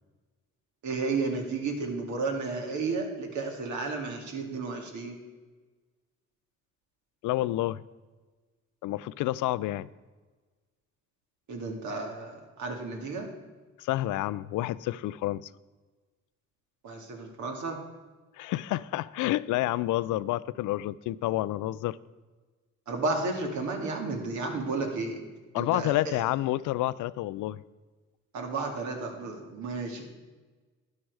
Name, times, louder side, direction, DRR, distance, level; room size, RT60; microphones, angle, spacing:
voice 1, 0.8-5.2 11.5-13.3 16.8-17.8 22.9-25.2 25.6-26.1 28.3-30.0, right 3 dB, 75° right, 2.2 m, -32 dB
voice 2, 7.2-7.8 8.8-9.9 13.8-15.5 18.3-22.0 25.5-27.6, left 16 dB, 80° left, 0.5 m, -29 dB
12.0 x 10.5 x 4.8 m
cardioid pair, 90°, 30 cm